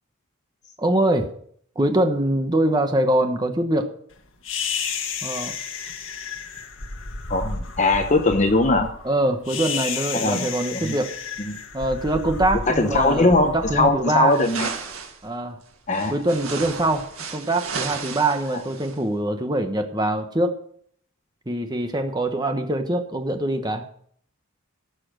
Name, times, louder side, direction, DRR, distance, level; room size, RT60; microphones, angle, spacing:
voice 1, 0.8-1.3 1.8-3.9 5.2-5.5 9.0-11.1 11.7-14.4 15.2-15.6 16.1-20.6 21.5-23.8, right 1 dB, 20° right, 6 dB, 1.1 m, -23 dB
sound 1, 4.4-14.8, left 5 dB, 70° left, 1.8 m, -32 dB
voice 2, 7.3-8.9 10.1-10.9 11.4-11.6 12.7-14.7 15.9-16.1, left 2 dB, 35° left, 5 dB, 1.0 m, -20 dB
sound 2, 14.3-15.2 15.9-19.0, right 5 dB, 85° right, 2.0 m, -33 dB
17.0 x 6.9 x 6.5 m, 0.62 s
head